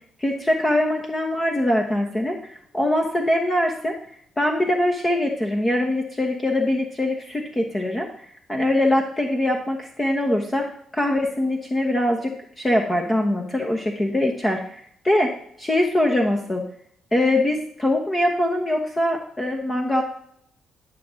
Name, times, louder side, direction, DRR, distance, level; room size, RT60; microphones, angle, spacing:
voice 1, 0.2-3.9 4.4-8.1 8.5-15.3 15.6-16.6 17.1-20.0, left 1 dB, 20° left, 2 dB, 1.2 m, -23 dB
11.5 x 6.4 x 3.7 m, 0.67 s
cardioid pair, 90°, 0 cm